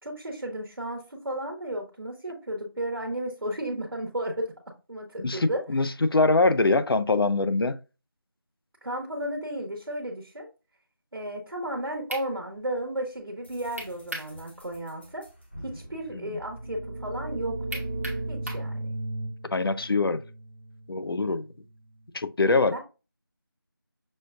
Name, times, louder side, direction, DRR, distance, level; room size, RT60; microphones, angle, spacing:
voice 1, 0.0-4.5 4.9-5.6 8.8-10.5 11.1-15.3 15.6-17.8 18.3-18.9 22.7-22.8, right 1 dB, 75° right, 1.1 m, -33 dB
voice 2, 5.2-7.8 16.1-16.3 19.5-20.2 20.9-21.5 22.1-22.8, left 3 dB, 75° left, 0.5 m, -23 dB
sound 1, 11.7-11.8 12.1-12.3 13.8-14.3 14.7-14.8 17.7-18.7, right 1 dB, 40° right, 1.1 m, -36 dB
sound 2, 13.4-17.3, equal, 30° left, 0.8 m, -49 dB
sound 3, 16.3-21.9, right 1 dB, 20° right, 0.7 m, -36 dB
6.1 x 2.3 x 2.4 m
figure-of-eight pair, 180°, 12 cm